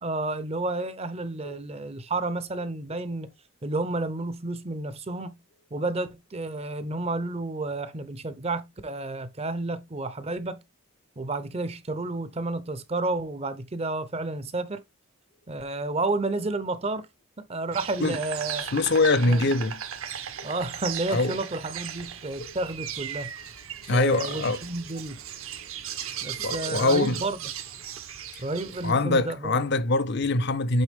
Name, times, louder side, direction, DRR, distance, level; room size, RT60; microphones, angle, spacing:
voice 1, 0.0-3.3 3.6-5.4 5.7-10.6 11.2-14.8 15.5-17.1 17.4-18.8 19.2-19.5 20.4-23.3 23.9-25.2 26.2-27.4 28.4-29.6, right 2 dB, 30° right, 0.6 m, -31 dB
Insect, 17.7-28.9, right 9 dB, 70° right, 0.9 m, -37 dB
voice 2, 18.7-19.8 21.1-21.4 22.4-22.5 23.9-24.6 26.4-27.2 28.8-30.8, left 2 dB, 50° left, 0.6 m, -23 dB
8.0 x 3.5 x 3.5 m
head